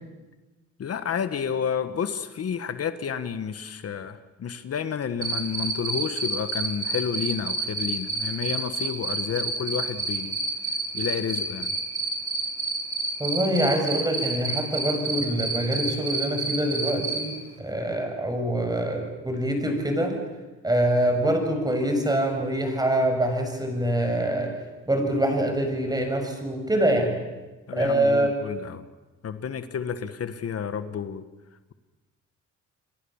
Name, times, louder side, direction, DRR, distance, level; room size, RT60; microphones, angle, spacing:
voice 1, 0.8-10.4 10.9-11.8 27.7-28.9 29.2-31.2, left 7 dB, 50° left, 11 dB, 1.5 m, -30 dB
Cricket, 5.2-17.2, right 3 dB, 45° right, 5.6 m, -28 dB
voice 2, 13.2-20.2 20.6-24.5 24.9-27.2 27.7-28.3, right 1 dB, 15° right, 4 dB, 7.0 m, -25 dB
29.5 x 22.5 x 7.3 m, 1.2 s
cardioid pair, 90°, 30 cm